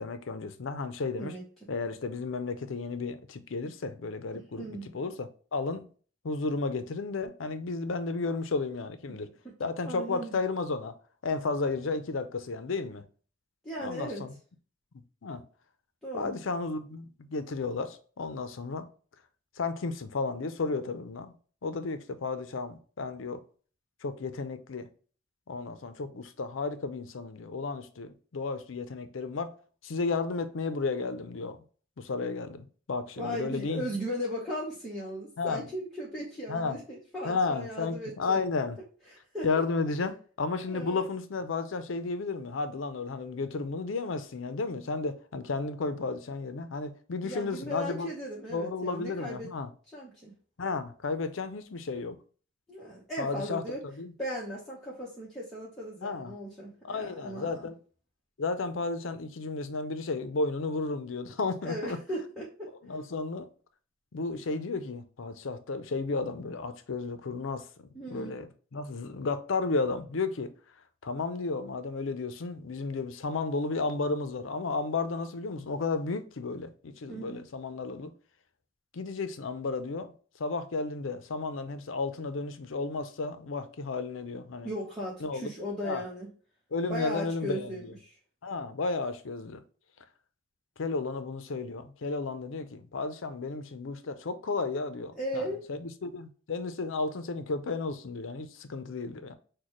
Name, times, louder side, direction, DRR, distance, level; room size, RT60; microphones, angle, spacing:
voice 1, 0.0-1.3 1.7-5.9 6.2-9.3 9.6-10.9 11.2-13.0 13.8-14.3 15.2-15.4 16.1-18.9 19.6-21.3 21.6-23.4 24.0-24.9 25.5-29.5 29.8-31.6 32.0-33.8 35.4-35.7 36.5-36.8 37.2-38.8 39.4-48.1 48.5-49.7 50.6-52.2 53.2-54.1 56.0-56.3 56.8-57.8 58.4-62.0 62.8-63.5 64.1-67.7 68.1-70.5 71.0-78.1 78.9-80.1 80.4-84.7 85.2-85.5 85.8-86.0 86.7-87.9 88.4-89.6 90.8-99.3, left 3 dB, 80° left, 0.6 m, -33 dB
voice 2, 1.2-1.7 4.6-4.9 9.1-9.2 9.9-10.4 13.6-14.2 16.0-16.4 33.2-38.4 39.3-39.6 40.6-41.0 47.2-49.5 49.9-50.3 52.7-53.8 54.2-57.7 61.6-62.7 67.9-68.4 77.1-77.4 84.6-86.3 86.9-88.1 95.1-95.6, equal, ahead, 1.1 m, -37 dB
6.3 x 2.2 x 3.0 m
head